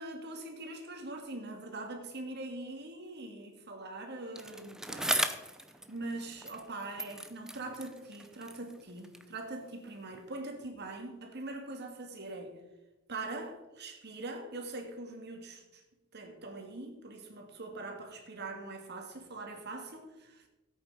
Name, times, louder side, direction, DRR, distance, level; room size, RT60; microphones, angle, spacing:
voice 1, 0.0-5.5 5.9-12.6 13.1-15.8 16.1-20.4, right 2 dB, 50° right, 2.1 m, -42 dB
Bicycle, 4.3-6.7 7.0-9.4 10.1-10.2, right 1 dB, 5° right, 0.7 m, -37 dB
14.5 x 8.5 x 4.9 m
head